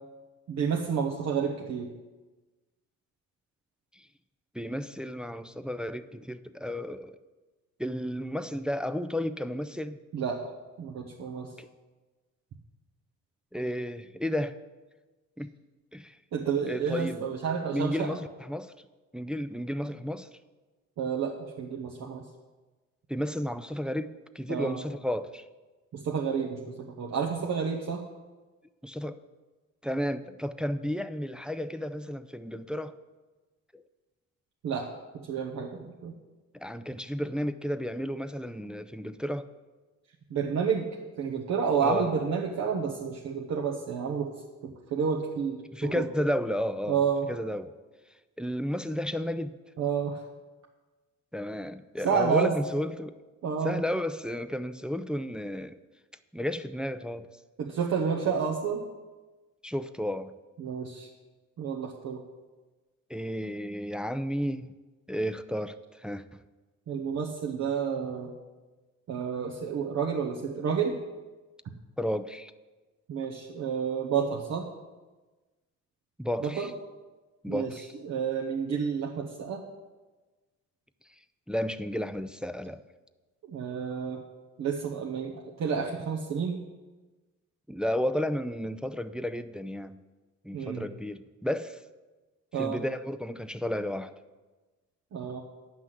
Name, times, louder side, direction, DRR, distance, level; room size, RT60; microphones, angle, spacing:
voice 1, 0.5-1.9 10.1-10.4 10.8-11.5 16.3-18.2 21.0-22.2 24.5-24.8 25.9-28.0 34.6-34.9 35.1-36.1 40.3-40.9 41.2-44.3 44.6-46.0 46.9-47.3 49.8-50.2 52.0-52.5 53.4-53.8 57.6-58.8 60.6-61.1 61.6-62.2 66.9-68.3 69.1-71.0 73.1-74.6 76.4-76.7 77.5-79.6 83.5-84.2 84.6-86.6 90.5-90.9 92.5-92.8 95.1-95.4, right 6 dB, 65° right, -1 dB, 1.2 m, -30 dB
voice 2, 4.5-7.2 7.8-10.0 11.6-11.7 13.5-14.6 15.4-15.5 15.9-16.2 16.7-17.3 17.7-18.7 19.1-20.3 23.1-25.4 28.8-29.2 29.8-33.0 33.7-33.8 36.5-39.5 41.8-42.1 45.7-47.0 47.3-47.7 48.4-49.6 51.3-53.2 53.6-55.8 56.3-57.3 59.6-60.3 63.1-64.7 65.1-66.2 72.0-72.5 76.2-76.7 77.4-77.9 81.5-82.8 87.7-90.0 90.4-91.8 92.6-94.1, equal, 5° right, 11 dB, 0.4 m, -32 dB
9.8 x 5.9 x 7.6 m, 1.2 s
cardioid pair, 90°, 30 cm